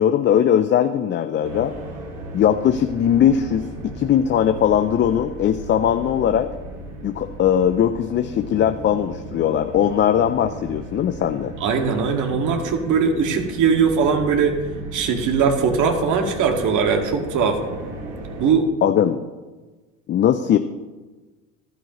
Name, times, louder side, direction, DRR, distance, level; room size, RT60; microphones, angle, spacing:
voice 1, 0.0-1.7 2.3-6.5 7.0-11.5 18.8-19.2 20.1-20.6, left 9 dB, 30° left, 9 dB, 0.5 m, -19 dB
sound 1, 1.4-18.5, right 2 dB, 75° right, 2.9 m, -36 dB
voice 2, 11.6-14.6 14.9-17.6 18.4-19.0, right 5 dB, 50° right, 3 dB, 2.1 m, -20 dB
14.5 x 11.5 x 3.1 m, 1.2 s
hypercardioid pair, 85°, 39 cm